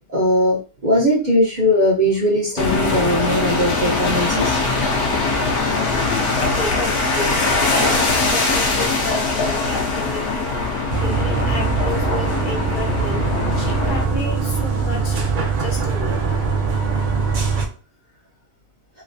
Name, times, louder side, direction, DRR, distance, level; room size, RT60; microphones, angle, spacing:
voice 1, 0.1-4.6, equal, 40° right, -4 dB, 0.7 m, -19 dB
sound 1, 2.6-14.0, left 3 dB, 75° left, 1.2 m, -21 dB
voice 2, 5.9-10.5 11.0-13.3 13.5-16.4, left 3 dB, 45° left, 0 dB, 0.7 m, -32 dB
sound 2, 10.9-17.7, right 4 dB, 70° right, 0.4 m, -22 dB
3.2 x 3.1 x 2.6 m, 0.35 s
omnidirectional pair, 1.6 m